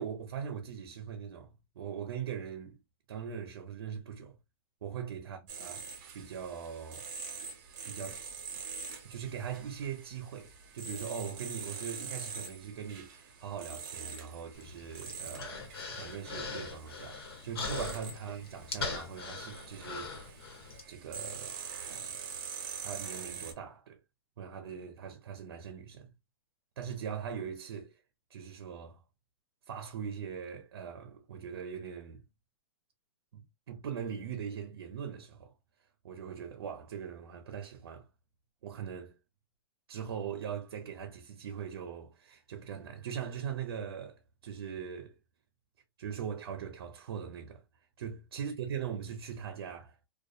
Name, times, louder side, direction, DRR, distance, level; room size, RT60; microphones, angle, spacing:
voice 1, 0.0-2.8 3.1-4.4 4.8-5.9 6.1-7.1 7.8-8.3 9.0-20.3 20.9-21.6 21.9-22.3 22.8-24.0 24.4-26.1 26.8-28.0 28.3-29.0 29.7-32.2 33.3-35.5 36.0-38.1 38.6-39.2 39.9-45.2 46.0-47.6 48.0-50.0, right 7 dB, 80° right, 0.6 m, -41 dB
worker cutting grooves wall puncher, 5.5-23.5, right 6 dB, 45° right, 0.8 m, -45 dB
Human voice, 14.5-20.8, left 4 dB, 80° left, 1.1 m, -41 dB
2.6 x 2.2 x 2.3 m
hypercardioid pair, 150°, 12 cm